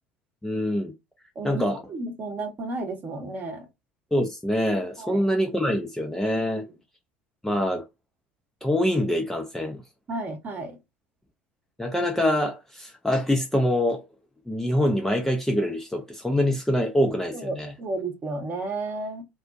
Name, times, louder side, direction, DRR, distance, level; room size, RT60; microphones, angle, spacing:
voice 1, 0.4-0.9 1.4-1.8 4.1-6.7 7.4-7.8 8.6-9.8 11.8-14.0 14.5-17.7, left 1 dB, 5° left, 0.5 m, -25 dB
voice 2, 1.4-3.7 5.0-5.2 6.4-6.7 10.1-10.8 17.3-19.2, right 2 dB, 30° right, 0.9 m, -33 dB
2.4 x 2.1 x 2.5 m
figure-of-eight pair, 70°, 6 cm